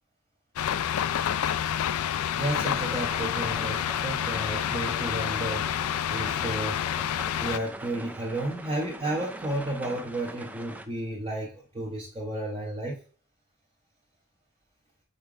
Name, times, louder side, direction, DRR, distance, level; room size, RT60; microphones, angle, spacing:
sound 1, 0.6-7.6, left 9 dB, 80° left, 0.4 m, -28 dB
voice 1, 2.4-5.7 6.1-6.8 7.4-13.0, right 1 dB, 25° right, -2 dB, 0.8 m, -32 dB
sound 2, 2.6-10.9, right 1 dB, 5° right, 0.3 m, -42 dB
5.3 x 3.7 x 4.9 m, 0.40 s
head